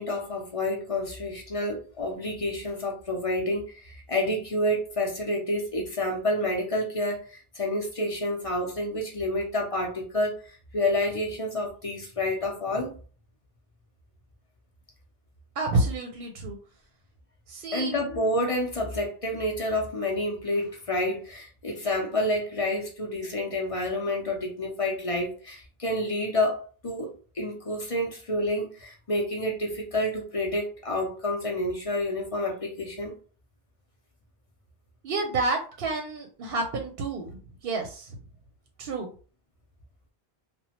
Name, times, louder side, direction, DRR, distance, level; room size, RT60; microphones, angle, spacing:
voice 1, 0.0-12.9 17.7-33.1, left 1 dB, 40° left, 0.5 m, -29 dB
voice 2, 15.6-16.6 17.5-17.9 35.0-38.2 38.8-39.1, right 2 dB, 65° right, 0.7 m, -29 dB
2.9 x 2.1 x 2.8 m
omnidirectional pair, 1.1 m